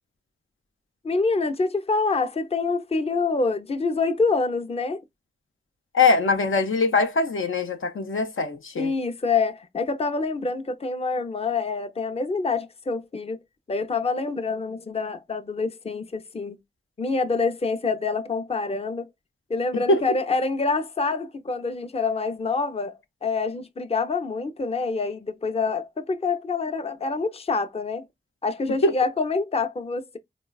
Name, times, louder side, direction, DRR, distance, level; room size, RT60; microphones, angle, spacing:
voice 1, 1.0-5.0 8.8-13.4 13.7-16.6 17.0-19.0 19.5-28.0 28.4-30.2, left 4 dB, 30° left, 0.5 m, -26 dB
voice 2, 5.9-8.9 19.9-20.0 28.8-28.9, left 3 dB, 80° left, 0.5 m, -22 dB
3.9 x 2.2 x 2.2 m
cardioid pair, 40°, 20 cm